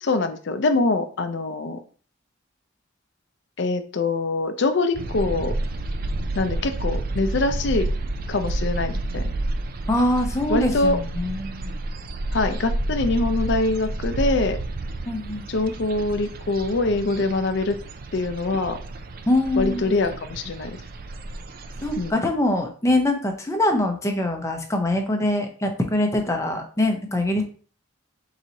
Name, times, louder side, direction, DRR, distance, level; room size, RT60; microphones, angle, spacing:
voice 1, 0.0-1.8 3.6-5.5 6.4-7.9 8.3-9.2 10.5-11.0 12.3-14.6 15.5-17.8 18.1-18.8 19.6-20.8 22.0-22.2, left 3 dB, 60° left, 9 dB, 0.5 m, -24 dB
sound 1, 4.9-22.1, right 2 dB, 45° right, 0.4 m, -30 dB
voice 2, 9.9-11.7 15.1-15.5 19.3-20.0 21.8-27.4, left 1 dB, 15° left, 4 dB, 0.7 m, -23 dB
4.5 x 3.9 x 2.8 m, 0.42 s
head